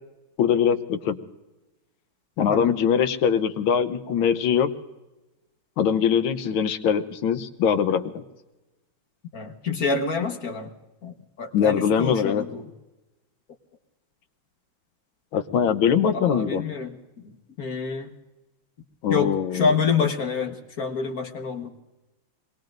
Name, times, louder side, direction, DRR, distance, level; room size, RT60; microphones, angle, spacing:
voice 1, 0.4-1.2 2.4-4.7 5.8-8.2 11.5-12.4 15.3-16.6 19.0-19.7, left 8 dB, 75° left, 9 dB, 1.7 m, -22 dB
voice 2, 9.3-10.7 11.0-12.6 16.1-17.0 17.2-18.1 19.1-21.7, left 5 dB, 50° left, 4 dB, 1.6 m, -27 dB
26.5 x 21.5 x 2.6 m, 1.0 s
omnidirectional pair, 2.2 m